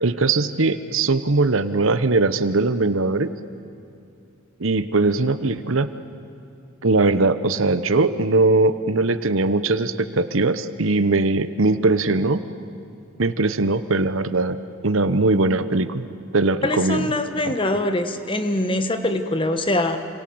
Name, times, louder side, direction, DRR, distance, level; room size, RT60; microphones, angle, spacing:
voice 1, 0.0-3.3 4.6-5.9 6.8-12.4 13.2-14.6 14.8-16.1 16.3-17.1 17.4-17.5, right 3 dB, 65° right, 12 dB, 1.0 m, -20 dB
voice 2, 16.6-20.0, left 1 dB, 25° left, 8 dB, 1.3 m, -23 dB
28.0 x 26.5 x 7.9 m, 2.5 s
head